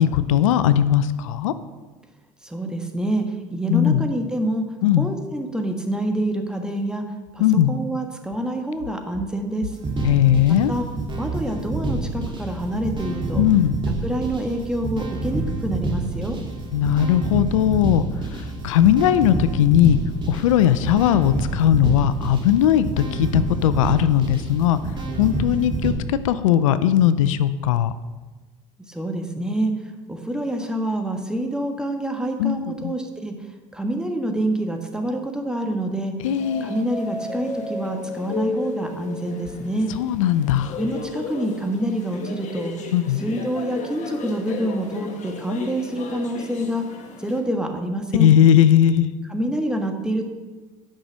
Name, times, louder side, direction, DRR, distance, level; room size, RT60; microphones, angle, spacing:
voice 1, 0.0-1.5 3.7-4.1 4.8-5.1 7.4-7.7 10.0-10.7 13.4-13.7 16.7-20.0 20.3-24.8 25.2-27.9 32.4-32.9 36.2-36.7 40.0-40.8 42.9-43.2 48.1-49.1, left 10 dB, 90° left, 13 dB, 0.4 m, -18 dB
voice 2, 2.4-3.2 3.5-4.6 5.0-7.0 7.3-9.8 10.7-10.8 11.2-13.4 14.0-16.4 28.9-29.7 30.1-36.1 36.6-39.9 40.8-42.7 43.2-46.8 47.2-48.3 49.3-50.3, right 1 dB, 5° right, 4 dB, 1.4 m, -26 dB
sound 1, 9.7-25.9, right 2 dB, 30° right, 2.0 m, -28 dB
sound 2, 36.2-47.4, left 3 dB, 45° left, 1.7 m, -34 dB
8.9 x 5.6 x 6.0 m, 1.3 s
hypercardioid pair, 80°, 16 cm